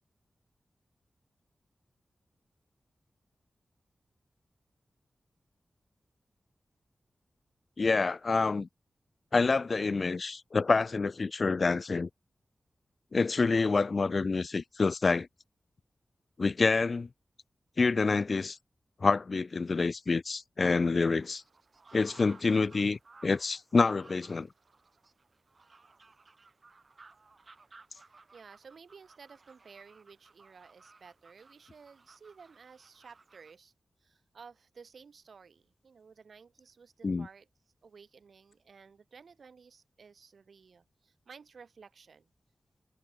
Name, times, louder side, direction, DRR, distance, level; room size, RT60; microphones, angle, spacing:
voice 1, 7.8-8.7 9.3-12.1 13.1-15.3 16.4-17.1 17.8-18.6 19.0-21.4 21.9-24.5 37.0-37.3, left 4 dB, 55° left, 0.3 m, -27 dB
sound 1, 20.8-33.6, right 3 dB, 50° right, 5.5 m, -58 dB
voice 2, 28.0-33.7 34.0-37.5 37.8-42.3, right 5 dB, 75° right, 3.4 m, -54 dB
wide cardioid pair, 80°, 0 cm